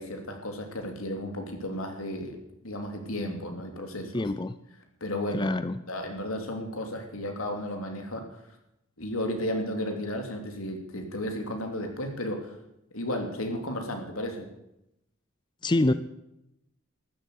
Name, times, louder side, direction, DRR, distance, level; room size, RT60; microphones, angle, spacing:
voice 1, 0.0-4.3 5.0-5.5 5.9-8.4 9.0-12.6 12.9-14.5, left 1 dB, 80° left, 4 dB, 3.1 m, -33 dB
voice 2, 4.1-4.6 5.3-5.8 15.6-15.9, left 2 dB, 20° left, 12 dB, 0.5 m, -25 dB
13.5 x 12.0 x 8.4 m, 0.84 s
head